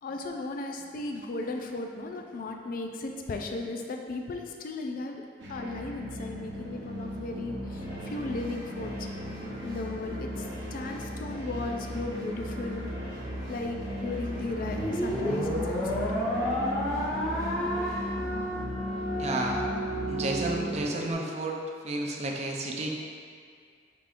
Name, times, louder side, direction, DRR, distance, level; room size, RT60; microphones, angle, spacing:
voice 1, 0.0-5.2 5.5-9.1 9.6-12.9 13.5-16.0, left 2 dB, 50° left, 3 dB, 0.3 m, -36 dB
sound 1, 5.4-20.8, left 1 dB, 75° right, 0.8 m, -36 dB
sound 2, 7.8-19.1, equal, 20° right, 1.4 m, -46 dB
sound 3, 14.6-21.1, equal, 5° left, 1.1 m, -31 dB
voice 2, 19.2-19.6 20.1-21.6 21.8-22.9, right 2 dB, 40° right, 0 dB, 0.5 m, -31 dB
5.8 x 3.5 x 2.5 m, 2.1 s
head